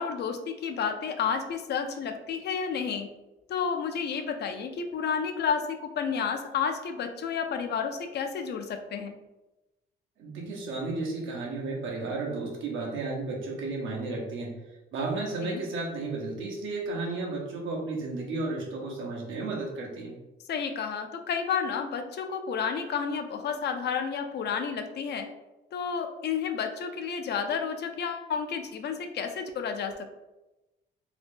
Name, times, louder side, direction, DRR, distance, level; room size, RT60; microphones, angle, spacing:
voice 1, 0.0-3.1 3.5-9.1 15.4-15.6 20.5-25.3 25.7-30.1, left 6 dB, 60° left, 6 dB, 0.4 m, -31 dB
voice 2, 10.2-14.5 14.9-20.1, right 3 dB, 80° right, -1 dB, 0.8 m, -33 dB
2.8 x 2.1 x 3.3 m, 1.0 s
cardioid pair, 90°, 20 cm